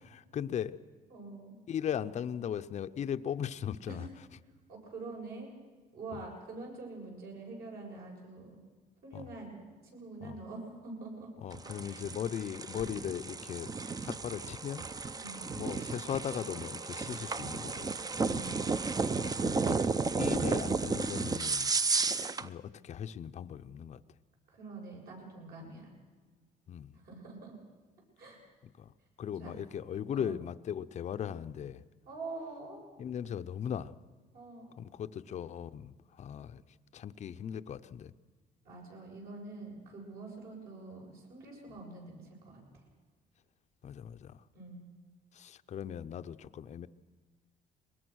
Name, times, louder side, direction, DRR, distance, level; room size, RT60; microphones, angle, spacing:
voice 1, 0.1-0.8 1.7-4.1 9.1-9.3 10.2-10.4 11.4-13.7 14.0-14.9 15.6-17.9 19.1-19.8 20.2-24.0 26.7-27.0 28.8-28.9 29.2-31.8 33.0-34.0 34.8-36.6 36.9-38.1 43.8-44.4 45.3-46.9, left 9 dB, 45° left, 11 dB, 0.6 m, -38 dB
voice 2, 1.1-1.6 3.9-4.0 4.7-5.5 5.9-8.6 9.0-11.3 11.9-12.0 15.2-15.5 18.2-18.7 24.5-25.9 26.9-27.5 28.2-28.4 29.4-29.5 30.1-30.4 32.1-32.8 34.3-34.8 38.6-42.8 44.5-44.9, right 3 dB, 65° right, -1 dB, 7.4 m, -45 dB
sound 1, 11.5-22.5, right 4 dB, 20° right, 0.6 m, -33 dB
22.5 x 20.5 x 6.3 m, 1.4 s
cardioid pair, 110°, 17 cm